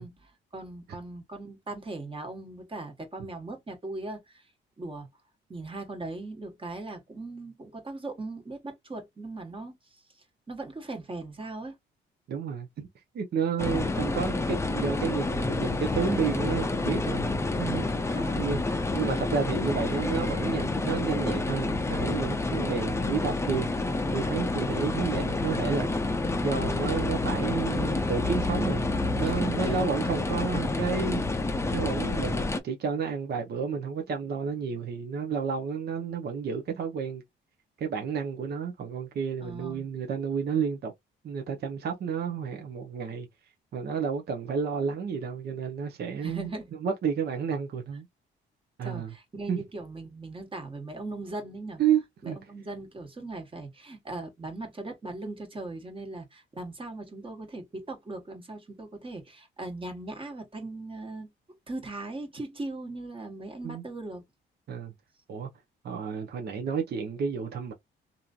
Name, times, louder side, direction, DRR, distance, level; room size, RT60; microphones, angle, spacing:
voice 1, 0.0-4.5 4.8-5.1 5.5-9.9 10.5-11.8 18.1-18.7 29.2-29.8 39.4-39.9 46.2-46.7 48.8-51.8 52.2-61.3 61.7-64.2, right 2 dB, 25° right, 1.3 m, -39 dB
voice 2, 12.3-12.9 13.1-17.3 17.6-18.6 18.9-23.7 24.1-25.9 26.4-31.5 31.7-37.2 37.8-40.9 41.2-43.3 43.7-46.5 46.8-48.1 48.8-49.1 49.5-49.6 51.8-52.4 63.6-63.8 64.7-64.9 65.3-65.5 65.8-67.7, right 6 dB, 55° right, 0.8 m, -31 dB
sound 1, 13.6-32.6, left 2 dB, 15° left, 0.6 m, -29 dB
3.0 x 2.6 x 2.3 m
cardioid pair, 90°, 20 cm